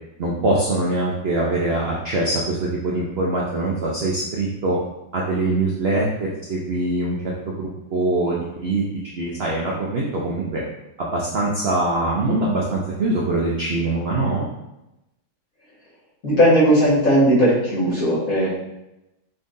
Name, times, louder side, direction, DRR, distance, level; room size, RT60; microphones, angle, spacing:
voice 1, 0.2-4.8 5.1-8.8 9.2-10.6 11.0-14.5, right 2 dB, 70° right, -3 dB, 0.6 m, -23 dB
voice 2, 16.2-18.5, equal, 45° left, -8 dB, 2.2 m, -17 dB
5.5 x 3.6 x 2.6 m, 0.90 s
omnidirectional pair, 2.1 m